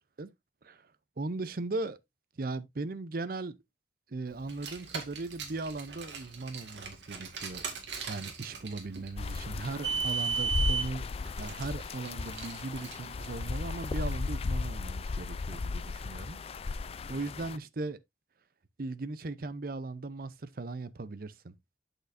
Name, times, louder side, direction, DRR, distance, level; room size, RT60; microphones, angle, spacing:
voice 1, 1.2-2.0 2.4-3.6 4.1-7.6 8.0-11.1 11.4-18.0 18.8-21.5, right 3 dB, 55° right, 0.6 m, -38 dB
Car, 4.4-13.9, right 5 dB, 85° right, 1.9 m, -37 dB
sound 1, 9.2-17.6, left 4 dB, 35° left, 0.3 m, -35 dB
7.9 x 6.4 x 2.6 m
head